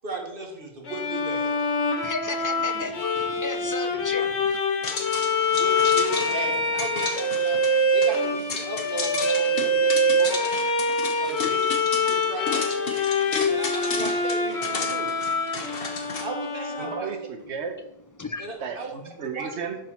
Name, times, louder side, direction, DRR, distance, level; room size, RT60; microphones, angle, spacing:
voice 1, 0.0-1.7 4.2-4.3 5.5-7.6 7.9-10.4 11.2-12.9 13.5-15.1 16.2-17.1 18.4-18.9 19.2-19.5, right 3 dB, 55° right, 1.7 m, -36 dB
Bowed string instrument, 0.9-17.4, left 1 dB, 90° left, 1.4 m, -25 dB
voice 2, 2.0-3.1 3.4-4.6 18.2-18.5, left 3 dB, 30° left, 0.3 m, -33 dB
sound 1, 4.8-16.2, left 4 dB, 60° left, 1.2 m, -33 dB
voice 3, 16.8-17.8 18.6-19.8, right 6 dB, 85° right, 1.3 m, -33 dB
11.0 x 4.0 x 4.4 m
omnidirectional pair, 1.1 m